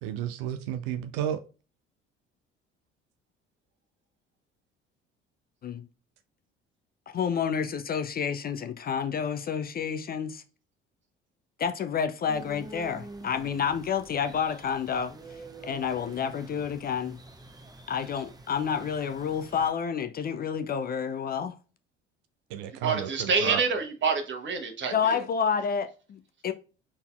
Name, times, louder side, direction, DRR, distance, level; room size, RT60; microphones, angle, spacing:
voice 1, 0.0-1.4 22.5-23.6, right 10 dB, 65° right, 0.5 m, -32 dB
voice 2, 7.1-10.4 11.6-15.1 15.6-17.2 17.9-21.6 24.9-26.5, left 7 dB, 30° left, 0.5 m, -29 dB
sound 1, 12.3-19.7, right 2 dB, 10° right, 0.8 m, -47 dB
voice 3, 22.8-25.2, right 5 dB, 35° right, 1.2 m, -27 dB
4.1 x 4.0 x 2.3 m
figure-of-eight pair, 55°, 32 cm